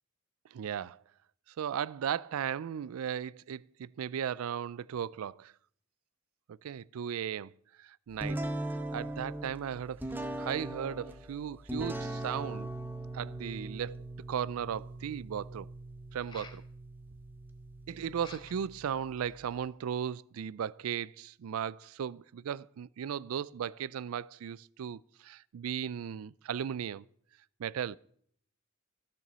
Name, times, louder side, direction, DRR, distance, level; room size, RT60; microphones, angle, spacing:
voice 1, 0.5-1.0 1.6-5.5 6.6-7.5 7.8-8.4 8.9-10.0 10.4-12.7 13.1-14.0 14.3-15.7 16.1-16.6 17.9-27.0 27.6-28.0, right 8 dB, 85° right, 0.4 m, -36 dB
sound 1, 8.2-19.7, right 1 dB, 10° right, 0.8 m, -40 dB
sound 2, 14.5-14.6 16.1-16.7 18.2-18.7 19.2-19.7, left 4 dB, 20° left, 0.9 m, -52 dB
15.0 x 6.9 x 6.1 m
head